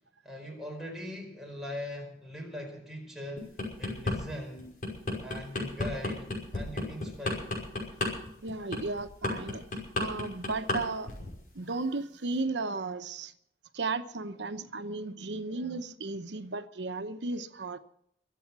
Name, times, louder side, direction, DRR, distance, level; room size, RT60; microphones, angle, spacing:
voice 1, 0.2-4.7 5.2-7.5, left 1 dB, ahead, 5.0 m, -41 dB
sound 1, 3.4-4.2 4.6-10.8 11.1-11.4, left 2 dB, 50° left, 5.5 m, -32 dB
voice 2, 8.4-9.7 10.0-11.1 11.5-13.3 13.7-17.8, right 3 dB, 85° right, 0.9 m, -34 dB
23.5 x 8.5 x 6.1 m
head